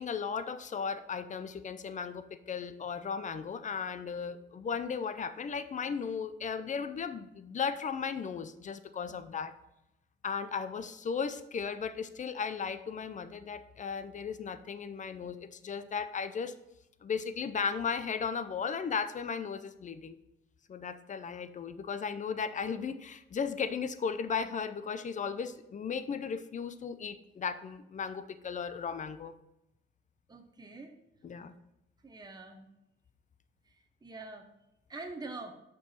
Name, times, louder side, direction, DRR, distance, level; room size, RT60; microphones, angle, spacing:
voice 1, 0.0-9.5 10.2-16.5 17.0-20.2 20.7-29.3 31.2-31.5, left 6 dB, 40° left, 12 dB, 0.6 m, -36 dB
voice 2, 30.3-30.9 32.0-32.7 34.0-34.4 34.9-35.5, right 3 dB, 20° right, 4 dB, 1.0 m, -44 dB
5.6 x 4.6 x 5.7 m, 0.87 s
cardioid pair, 90°, 20 cm